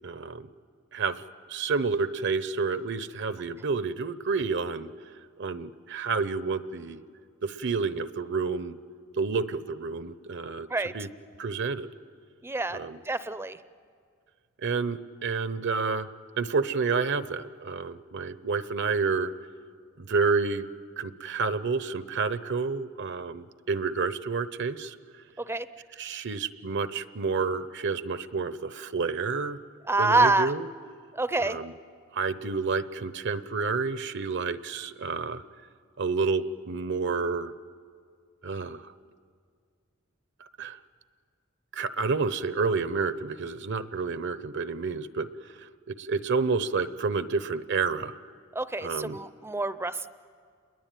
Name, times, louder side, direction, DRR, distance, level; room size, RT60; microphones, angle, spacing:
voice 1, 0.0-0.5 0.9-1.2 1.5-4.9 5.4-7.0 7.4-8.8 9.2-10.7 10.9-11.1 11.4-11.9 12.7-13.0 14.6-16.1 16.4-19.3 20.0-20.7 21.0-25.0 26.0-29.6 30.0-30.7 31.4-31.7 32.1-35.4 36.0-37.5 38.4-38.9 40.4-40.8 41.7-45.3 45.6-48.2 48.8-49.2, right 4 dB, 60° right, 14 dB, 0.9 m, -29 dB
voice 2, 12.4-13.6 25.4-25.7 29.9-30.5 31.1-31.6 48.5-50.1, right 2 dB, 10° right, 13 dB, 0.6 m, -27 dB
29.0 x 22.0 x 9.2 m, 2.2 s
head